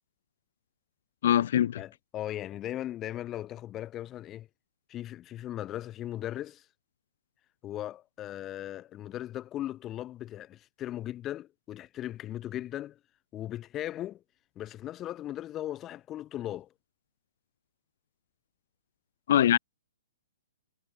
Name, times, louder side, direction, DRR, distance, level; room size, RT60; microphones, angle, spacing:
voice 1, 1.2-1.8 19.3-19.6, left 11 dB, 60° left, 0.6 m, -22 dB
voice 2, 1.8-4.5 4.9-6.6 7.6-13.0 13.3-14.2 14.6-16.7, left 13 dB, 25° left, 1.1 m, -38 dB
hypercardioid pair, 130°, 0 cm